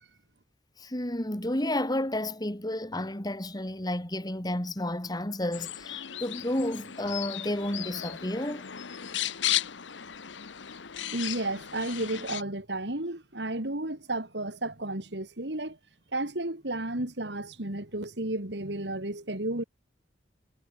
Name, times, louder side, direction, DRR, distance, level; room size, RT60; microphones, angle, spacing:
voice 1, 0.8-8.6, left 1 dB, 20° left, 2.4 m, -31 dB
sound 1, 5.5-12.4, left 12 dB, 85° left, 1.1 m, -35 dB
voice 2, 11.1-15.8 16.1-19.6, right 1 dB, 65° right, 3.3 m, -32 dB
head